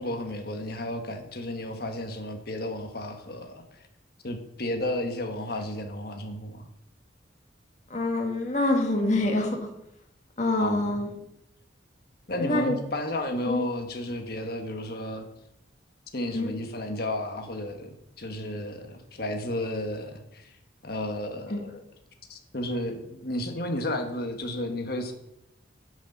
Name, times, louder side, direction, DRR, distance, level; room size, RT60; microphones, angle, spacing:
voice 1, 0.0-3.8 4.2-6.7 10.6-11.0 12.3-15.3 16.1-20.5 20.8-21.8 22.3-25.1, left 1 dB, 55° left, 5 dB, 1.4 m, -33 dB
voice 2, 7.9-9.6 10.4-11.1 12.3-12.8 13.5-13.6 16.3-16.5 21.5-21.6, left 2 dB, 40° left, 2 dB, 1.6 m, -26 dB
9.8 x 6.4 x 5.5 m, 0.82 s
head